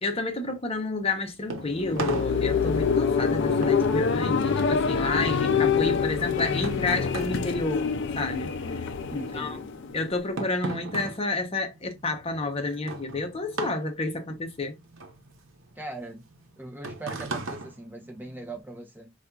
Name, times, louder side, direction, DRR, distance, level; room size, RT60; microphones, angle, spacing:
voice 1, 0.0-7.9 8.2-9.6 9.9-14.7, left 3 dB, 30° left, 0.7 m, -30 dB
sound 1, 1.0-8.6 8.9-18.6, right 3 dB, 70° right, 0.9 m, -38 dB
sound 2, 1.6-10.2, left 5 dB, 60° left, 0.5 m, -26 dB
voice 2, 9.2-9.7 15.8-16.2 16.6-19.1, right 2 dB, 10° right, 0.8 m, -40 dB
4.2 x 2.4 x 2.3 m
head